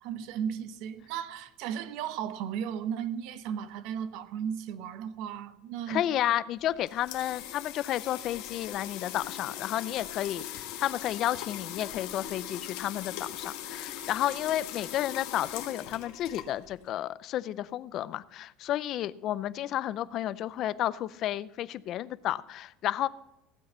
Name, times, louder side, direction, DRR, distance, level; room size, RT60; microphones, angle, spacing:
voice 1, 0.0-6.1, right 8 dB, 60° right, 0.8 m, -35 dB
voice 2, 5.9-23.1, left 12 dB, 40° left, 0.5 m, -32 dB
sound 1, 6.6-16.9, left 11 dB, 65° left, 1.6 m, -40 dB
15.0 x 8.2 x 5.6 m
cardioid pair, 160°, 0 cm